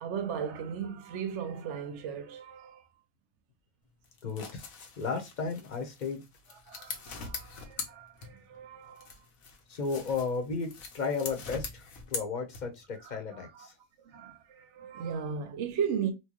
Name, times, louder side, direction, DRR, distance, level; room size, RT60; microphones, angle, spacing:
voice 1, 0.0-2.9 6.5-9.1 13.0-13.7 14.1-16.1, right 7 dB, 65° right, 0.9 m, -37 dB
sound 1, 4.0-8.6 9.0-12.9, left 4 dB, 90° left, 1.3 m, -43 dB
voice 2, 4.2-4.6 5.0-6.2 9.7-11.8 12.1-13.7, left 4 dB, 40° left, 0.8 m, -34 dB
4.4 x 2.2 x 2.9 m
omnidirectional pair, 1.4 m